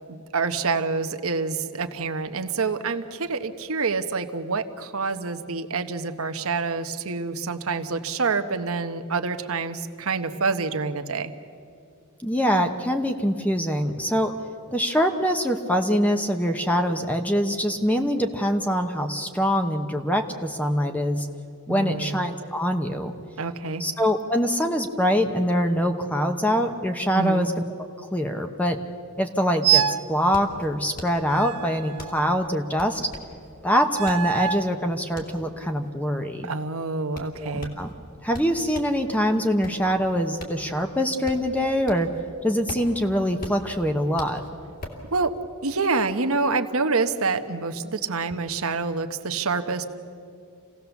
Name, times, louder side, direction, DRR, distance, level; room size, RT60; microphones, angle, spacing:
voice 1, 0.1-11.3 21.7-22.2 23.4-23.8 27.1-27.5 36.4-37.7 45.1-45.3 45.6-49.8, right 4 dB, 65° right, 8 dB, 1.1 m, -27 dB
voice 2, 12.2-14.3 14.7-21.3 21.7-23.1 23.8-27.5 28.1-28.8 29.2-33.0 33.6-36.5 37.4-37.9 38.2-42.1 42.4-44.4, equal, 5° left, 5 dB, 0.9 m, -24 dB
sound 1, 29.6-30.1 31.3-32.5 33.9-34.7, right 10 dB, 85° right, 0.6 m, -25 dB
sound 2, 30.3-39.0 39.4-42.2 42.5-45.1, left 1 dB, 40° left, 2.8 m, -41 dB
27.0 x 17.0 x 7.1 m, 2.5 s
head